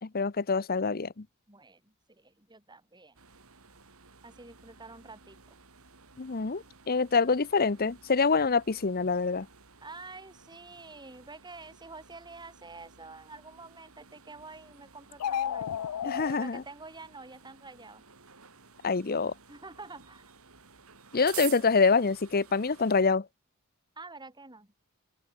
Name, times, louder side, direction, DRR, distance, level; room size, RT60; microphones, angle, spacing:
voice 1, 0.0-1.3 6.2-9.5 16.0-16.6 18.8-19.3 21.1-23.3, left 4 dB, 45° left, 0.8 m, -26 dB
voice 2, 1.5-3.2 4.2-5.6 9.8-18.0 19.5-20.3 24.0-24.7, right 3 dB, 20° right, 3.7 m, -48 dB
sound 1, 3.2-23.0, right 10 dB, 75° right, 3.6 m, -51 dB
sound 2, 15.1-16.3, left 9 dB, 80° left, 0.4 m, -31 dB
open air
head